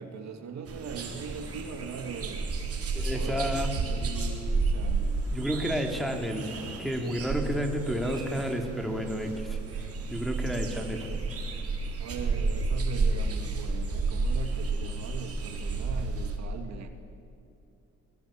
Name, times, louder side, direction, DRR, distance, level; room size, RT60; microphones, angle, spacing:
voice 1, 0.0-2.5 3.1-5.3 10.4-10.7 12.0-16.9, right 6 dB, 65° right, 6 dB, 2.3 m, -40 dB
sound 1, 0.7-16.4, right 3 dB, 50° right, 4.0 m, -31 dB
voice 2, 3.0-3.7 5.3-9.6 10.1-11.1, equal, ahead, 2 dB, 3.4 m, -31 dB
22.5 x 21.0 x 8.9 m, 2.6 s
cardioid pair, 90°, 30 cm